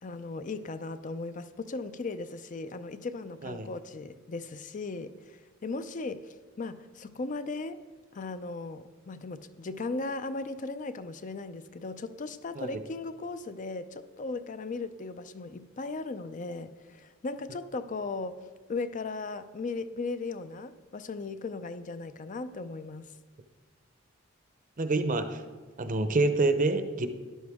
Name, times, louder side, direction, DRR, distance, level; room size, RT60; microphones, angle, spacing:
voice 1, 0.0-7.8 8.1-23.1, left 3 dB, 40° left, 12 dB, 0.5 m, -37 dB
voice 2, 24.8-25.4 25.8-27.1, right 2 dB, 40° right, 9 dB, 0.7 m, -27 dB
12.5 x 10.5 x 3.6 m, 1.4 s
head